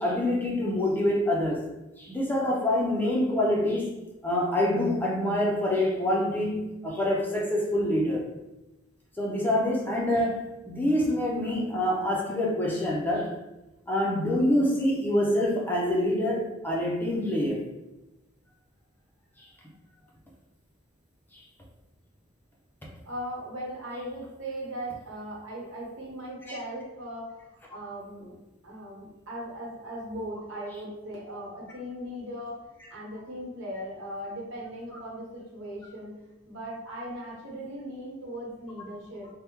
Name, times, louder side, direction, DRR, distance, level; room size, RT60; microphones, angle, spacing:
voice 1, 0.0-1.6 2.0-3.9 4.2-8.3 9.2-13.4 13.9-17.6 19.4-19.5 21.3-21.4 26.5-26.6, left 1 dB, 10° left, -3 dB, 0.5 m, -26 dB
voice 2, 23.0-28.3 28.6-36.1 36.5-39.3, equal, 90° right, -5 dB, 1.2 m, -38 dB
3.4 x 2.1 x 3.0 m, 0.99 s
head